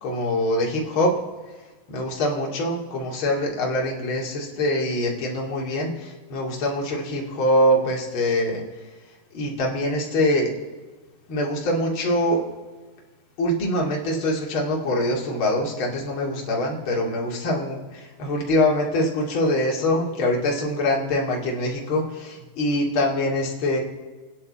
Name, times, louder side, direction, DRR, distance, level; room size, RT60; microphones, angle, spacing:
voice 1, 0.0-1.1 1.9-8.6 9.3-10.5 11.3-12.4 13.4-23.8, left 1 dB, 40° left, -2 dB, 2.4 m, -24 dB
29.0 x 9.8 x 4.2 m, 1.3 s
omnidirectional pair, 4.8 m